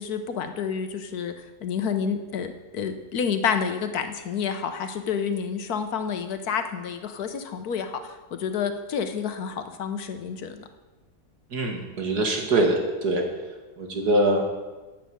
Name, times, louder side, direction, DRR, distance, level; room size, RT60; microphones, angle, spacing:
voice 1, 0.0-10.7, left 6 dB, 70° left, 8 dB, 1.4 m, -29 dB
voice 2, 11.5-13.2 13.8-14.4, right 1 dB, 80° right, 2 dB, 2.4 m, -23 dB
10.5 x 7.3 x 7.9 m, 1.2 s
omnidirectional pair, 1.7 m